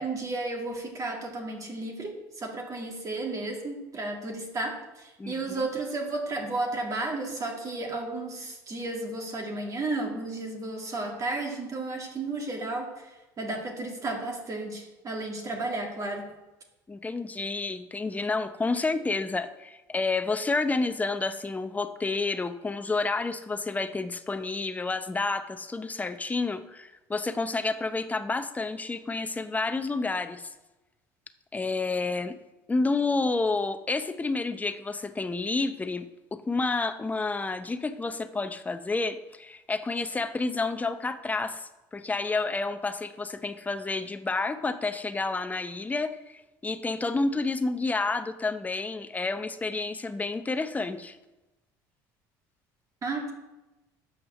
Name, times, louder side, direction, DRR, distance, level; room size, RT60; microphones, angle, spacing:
voice 1, 0.0-16.2 53.0-53.3, right 2 dB, 40° right, 2 dB, 2.2 m, -33 dB
voice 2, 5.2-5.6 16.9-30.4 31.5-32.4 32.7-51.2, left 3 dB, 15° left, 10 dB, 0.7 m, -30 dB
7.4 x 5.7 x 6.4 m, 1.0 s
supercardioid pair, 85°, 9 cm